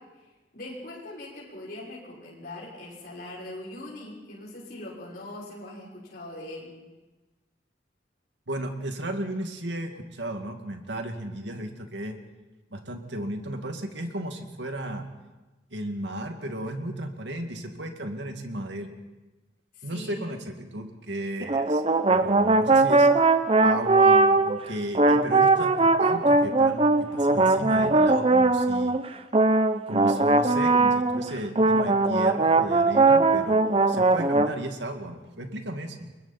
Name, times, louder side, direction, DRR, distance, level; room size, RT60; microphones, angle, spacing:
voice 1, 0.2-6.7 19.7-20.3, left 1 dB, 55° left, -6 dB, 6.3 m, -41 dB
voice 2, 8.5-12.2 12.7-15.1 15.7-18.9 19.8-21.8 22.1-23.1 23.6-29.0 29.9-36.1, right 1 dB, 80° right, 4 dB, 2.4 m, -34 dB
sound 1, 21.4-24.6 24.9-31.3 31.6-34.5, right 3 dB, 30° right, 0.8 m, -20 dB
29.5 x 22.5 x 4.4 m, 1.1 s
head